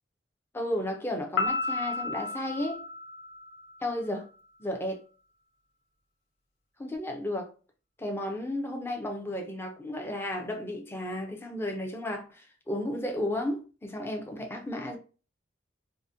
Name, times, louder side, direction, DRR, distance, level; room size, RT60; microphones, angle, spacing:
voice 1, 0.5-2.8 3.8-4.3 4.6-5.0 6.8-7.5 8.0-15.0, left 1 dB, 15° left, 0.5 m, -33 dB
Piano, 1.4-3.9, left 3 dB, 85° left, 0.7 m, -33 dB
3.8 x 2.1 x 2.6 m
head